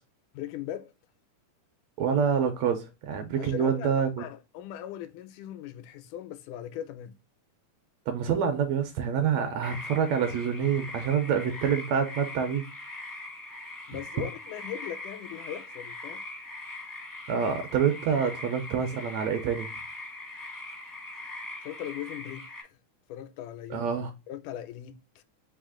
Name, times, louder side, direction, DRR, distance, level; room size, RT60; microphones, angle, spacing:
voice 1, 0.3-0.9 3.4-7.2 13.9-16.2 21.6-22.8 23.1-23.9 24.3-25.2, left 11 dB, 85° left, 2.1 m, -39 dB
voice 2, 2.0-4.2 8.1-12.7 17.3-19.7 23.7-24.1, right 7 dB, 75° right, 1.6 m, -27 dB
sound 1, 9.6-22.6, left 2 dB, 30° left, 0.3 m, -41 dB
4.9 x 2.8 x 3.6 m
omnidirectional pair, 3.5 m